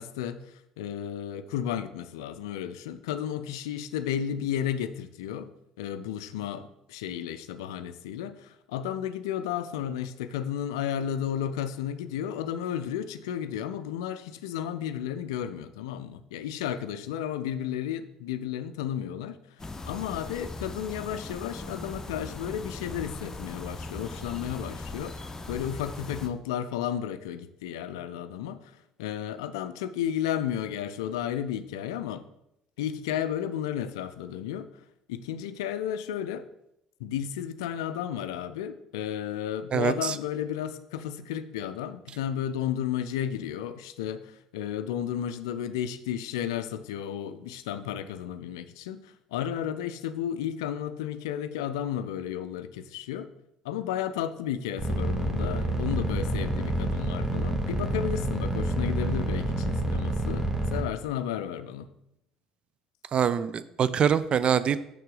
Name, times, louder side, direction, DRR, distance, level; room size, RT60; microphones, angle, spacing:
voice 1, 0.0-19.4 19.9-32.3 32.8-34.7 35.1-36.5 37.0-53.3 53.6-61.9, left 10 dB, 75° left, 12 dB, 0.4 m, -33 dB
sound 1, 19.6-26.3, left 2 dB, 20° left, 0.8 m, -39 dB
voice 2, 39.7-40.1 63.1-64.8, right 8 dB, 45° right, 15 dB, 0.4 m, -24 dB
sound 2, 54.8-60.8, right 2 dB, 20° right, 1.4 m, -28 dB
6.7 x 6.5 x 3.9 m, 0.83 s
figure-of-eight pair, 55°, 3 cm